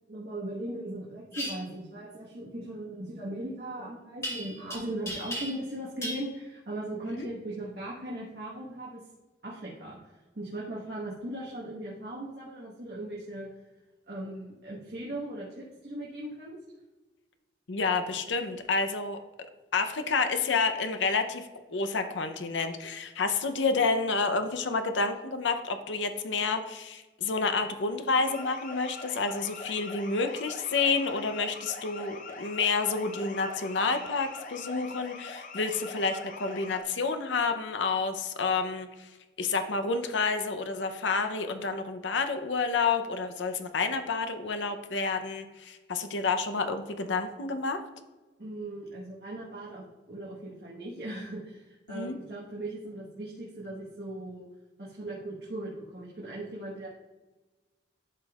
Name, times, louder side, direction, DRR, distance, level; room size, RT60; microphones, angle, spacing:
voice 1, 0.1-9.1 9.4-13.5 14.1-16.6 18.4-18.5 48.4-54.5 54.8-56.9, right 1 dB, 60° right, -6 dB, 1.4 m, -38 dB
sound 1, 1.3-1.5 4.2-4.8 5.1-5.7 6.0-6.2, equal, 15° left, 1.8 m, -35 dB
voice 2, 17.7-19.2 19.7-39.1 39.4-47.8 51.9-52.2, left 4 dB, 85° left, 7 dB, 0.7 m, -29 dB
sound 2, 28.2-36.8, left 3 dB, 45° left, 0.7 m, -43 dB
12.0 x 5.2 x 2.4 m, 1.2 s
head